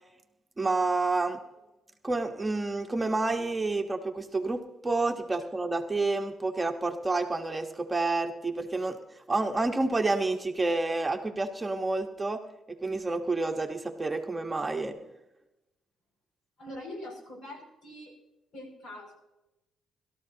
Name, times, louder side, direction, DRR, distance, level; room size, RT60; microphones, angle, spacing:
voice 1, 0.6-1.4 2.0-9.0 9.3-12.4 12.8-15.0, right 3 dB, 20° right, 3 dB, 1.3 m, -29 dB
voice 2, 16.6-18.1 18.5-19.2, left 1 dB, 70° left, 2 dB, 6.4 m, -43 dB
22.0 x 13.5 x 2.9 m, 0.94 s
cardioid pair, 90°, 0 cm